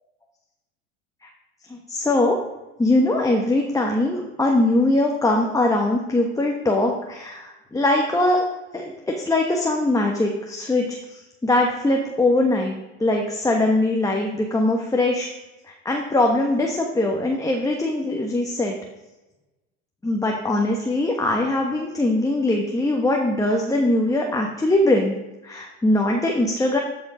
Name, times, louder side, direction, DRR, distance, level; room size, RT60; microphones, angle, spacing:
voice 1, 1.7-2.4 2.8-8.4 8.7-15.3 15.8-18.7 20.0-25.1 25.4-26.8, left 2 dB, 10° left, 0 dB, 1.2 m, -21 dB
13.5 x 5.3 x 4.9 m, 1.1 s
supercardioid pair, 105°, 35 cm